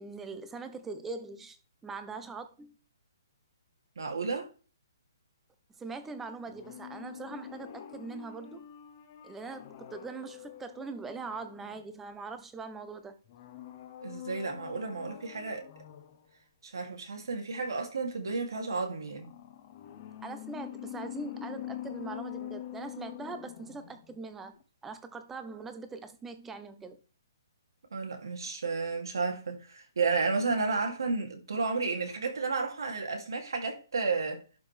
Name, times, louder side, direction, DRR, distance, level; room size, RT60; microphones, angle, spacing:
voice 1, 0.0-1.6 1.8-2.7 5.8-8.6 9.2-13.2 20.2-24.6 24.8-27.0, right 4 dB, 10° right, 0.9 m, -42 dB
voice 2, 4.0-4.5 14.0-15.7 16.6-19.3 27.9-34.4, right 4 dB, 80° right, 2.8 m, -32 dB
sound 1, 6.5-12.2 13.3-16.3 19.1-24.3 24.5-24.6, left 12 dB, 35° left, 1.0 m, -45 dB
11.5 x 5.2 x 3.4 m
hypercardioid pair, 155°, 2 cm